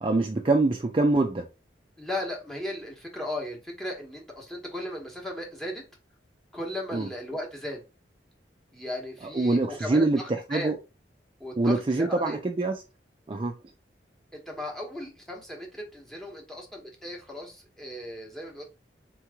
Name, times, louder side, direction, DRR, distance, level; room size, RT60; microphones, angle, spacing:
voice 1, 0.0-1.5 6.9-7.1 9.3-10.7 11.6-12.8 13.3-13.5, right 2 dB, 30° right, 0.4 m, -24 dB
voice 2, 2.0-5.8 6.5-7.8 8.7-10.7 11.4-12.4 14.3-18.6, left 1 dB, ahead, 1.1 m, -36 dB
3.7 x 3.0 x 3.5 m
head